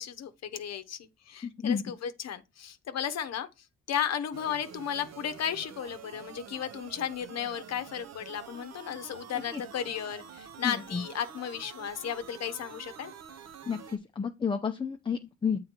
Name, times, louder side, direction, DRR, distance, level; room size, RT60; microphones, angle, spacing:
voice 1, 0.0-13.1, left 9 dB, 60° left, 0.8 m, -35 dB
voice 2, 1.4-1.8 9.5-9.6 10.6-11.0 13.7-15.7, left 6 dB, 15° left, 0.5 m, -31 dB
sound 1, 4.3-14.0, right 8 dB, 60° right, 0.7 m, -47 dB
7.5 x 3.8 x 4.4 m
cardioid pair, 90°, 30 cm